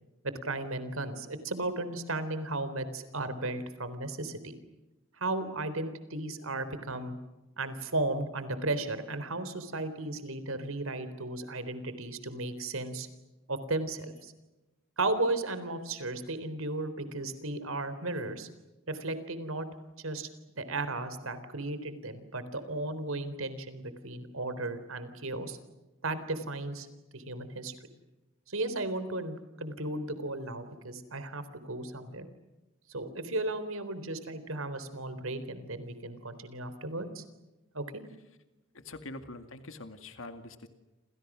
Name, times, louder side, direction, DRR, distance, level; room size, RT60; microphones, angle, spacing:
voice 1, 0.2-4.6 5.2-7.2 7.6-13.1 13.5-14.3 15.0-18.5 18.9-19.7 20.0-20.3 20.6-25.6 26.0-26.9 27.1-27.7 28.5-32.3 32.9-37.2 37.7-38.0, right 2 dB, 80° right, 12 dB, 3.9 m, -35 dB
voice 2, 38.7-40.7, left 2 dB, 70° left, 8 dB, 2.2 m, -44 dB
29.5 x 27.5 x 6.3 m, 1.0 s
head